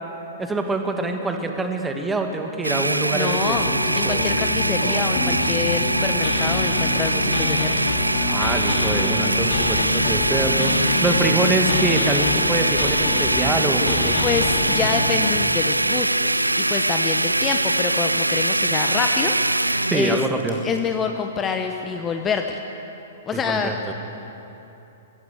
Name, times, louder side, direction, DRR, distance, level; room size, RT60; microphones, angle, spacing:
voice 1, 0.4-4.3 4.8-5.0 8.3-14.2 19.9-20.6 23.3-23.9, right 2 dB, 10° right, 4 dB, 2.1 m, -25 dB
Domestic sounds home sounds, 2.6-20.3, right 1 dB, 85° right, 0.4 m, -22 dB
voice 2, 3.1-3.7 3.9-7.8 14.2-20.2 20.6-22.6 23.2-23.7, left 6 dB, 20° left, 5 dB, 1.1 m, -27 dB
sound 1, 3.2-15.3, left 4 dB, 45° left, 2.8 m, -27 dB
sound 2, 8.8-16.7 17.0-20.8, left 4 dB, 70° left, 4.0 m, -46 dB
23.0 x 17.0 x 8.3 m, 2.9 s
figure-of-eight pair, 110°, 0 cm